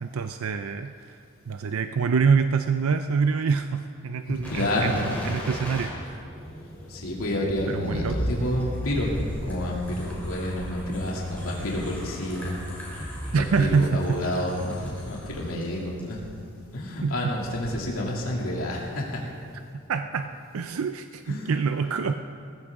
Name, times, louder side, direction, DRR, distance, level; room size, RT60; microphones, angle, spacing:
voice 1, 0.0-1.2 1.5-5.0 5.2-6.3 7.7-8.4 13.3-14.2 17.0-17.3 19.9-22.1, right 5 dB, 85° right, 8 dB, 0.5 m, -26 dB
voice 2, 4.3-5.1 6.9-12.6 13.3-16.2 16.7-19.2 21.3-21.5, left 1 dB, 85° left, -3 dB, 2.6 m, -29 dB
sound 1, 4.4-15.6 16.0-16.1, equal, 10° left, 3.6 m, -36 dB
19.0 x 15.0 x 3.7 m, 2.3 s
head